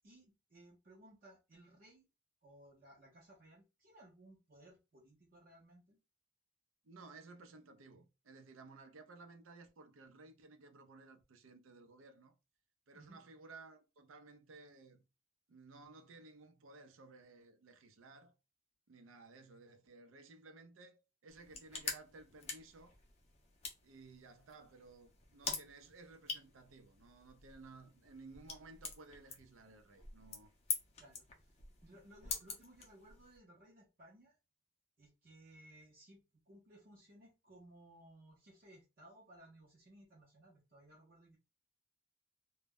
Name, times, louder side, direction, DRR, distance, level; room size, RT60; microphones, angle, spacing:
voice 1, 0.0-2.1 2.4-6.0 12.9-13.2 31.0-34.4 35.0-41.4, right 1 dB, 45° right, 0.6 m, -61 dB
voice 2, 6.8-12.3 12.9-15.0 15.5-18.4 18.9-22.9 23.8-30.5, right 3 dB, 90° right, 0.5 m, -57 dB
sound 1, 21.3-33.4, left 5 dB, 30° left, 0.5 m, -46 dB
2.1 x 2.0 x 3.5 m
head